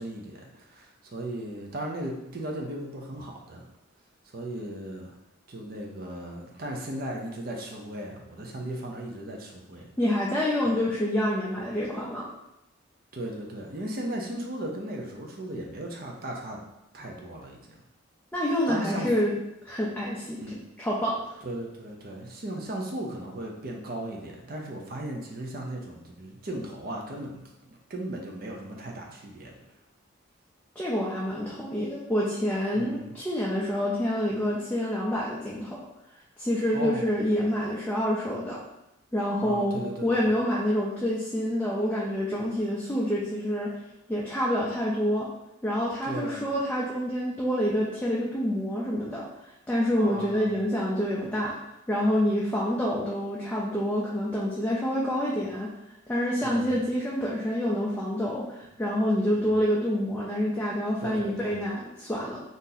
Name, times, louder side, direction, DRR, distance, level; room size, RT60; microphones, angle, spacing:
voice 1, 0.0-3.7 4.3-5.2 5.5-9.9 10.7-10.8 13.1-16.7 16.9-17.8 18.7-19.3 20.4-20.6 21.4-29.5 32.7-33.1 36.7-37.1 39.4-40.3 46.0-46.5 49.9-50.6 56.4-56.8 59.3-59.6 61.0-61.6, right 1 dB, 45° right, 0 dB, 0.5 m, -36 dB
voice 2, 10.0-12.3 18.3-19.3 19.6-21.4 30.8-35.8 36.4-38.6 39.1-43.7 44.1-45.3 45.6-49.2 49.7-51.5 51.9-55.7 56.1-62.4, equal, 5° left, -7 dB, 0.4 m, -27 dB
2.7 x 2.5 x 3.9 m, 0.87 s
head